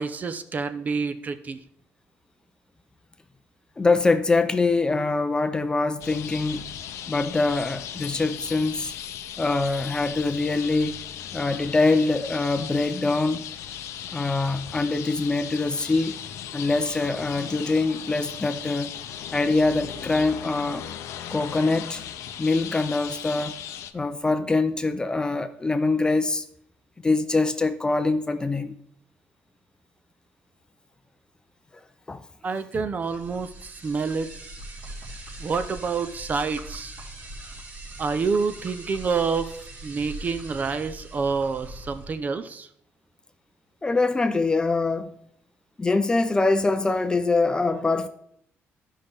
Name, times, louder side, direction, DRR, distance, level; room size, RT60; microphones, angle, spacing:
voice 1, 0.0-1.6 32.4-34.3 35.4-37.0 38.0-39.5 39.8-42.7, right 5 dB, 35° right, 0.5 m, -28 dB
voice 2, 3.8-6.6 7.1-8.9 9.4-11.0 11.3-13.5 14.1-16.2 16.5-18.9 19.3-20.9 21.3-22.0 22.4-23.6 23.9-26.4 27.0-28.8 32.1-32.2 43.8-45.1 45.8-48.1, left 3 dB, 15° left, 0.4 m, -24 dB
sound 1, 6.0-23.9, left 10 dB, 80° left, 0.5 m, -37 dB
sound 2, 33.0-42.1, right 1 dB, 85° right, 2.9 m, -41 dB
12.5 x 5.5 x 3.5 m
cardioid pair, 130°, 5 cm